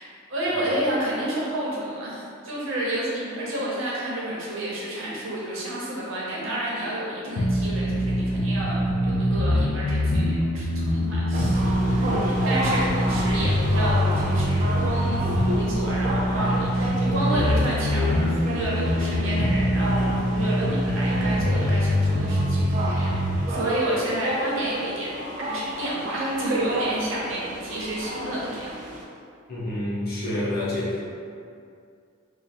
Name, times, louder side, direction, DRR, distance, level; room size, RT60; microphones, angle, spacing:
voice 1, 0.0-25.1 25.4-28.7, right 1 dB, 70° right, -5 dB, 0.9 m, -30 dB
sound 1, 7.4-23.4, equal, 65° left, 0.4 m, -24 dB
sound 2, 11.3-29.0, equal, 40° right, 0.4 m, -32 dB
voice 2, 11.9-12.3 29.5-31.0, left 1 dB, 45° left, -7 dB, 0.8 m, -28 dB
3.2 x 2.2 x 4.1 m, 2.4 s
head